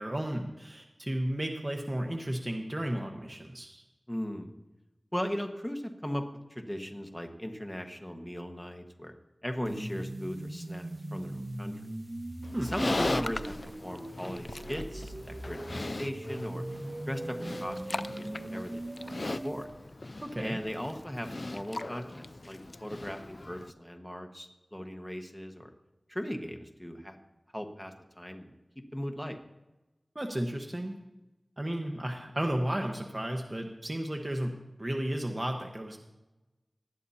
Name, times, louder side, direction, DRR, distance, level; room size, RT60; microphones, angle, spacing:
voice 1, 0.0-3.8 12.5-12.7 20.2-20.6 30.1-31.0 31.6-36.0, right 1 dB, 30° right, 2 dB, 1.3 m, -33 dB
voice 2, 4.1-4.5 5.1-6.2 6.5-9.1 9.4-11.8 12.6-13.5 13.8-16.6 17.1-18.8 19.1-19.7 20.4-25.7 26.1-27.2 27.5-28.5 28.9-29.4, equal, 10° left, 4 dB, 1.4 m, -38 dB
sound 1, 9.6-19.6, right 1 dB, 45° right, 1.5 m, -40 dB
Livestock farm animals working animals, 12.4-23.7, left 2 dB, 50° left, 0.3 m, -38 dB
19.5 x 12.0 x 2.9 m, 1.0 s
wide cardioid pair, 65°, 0 cm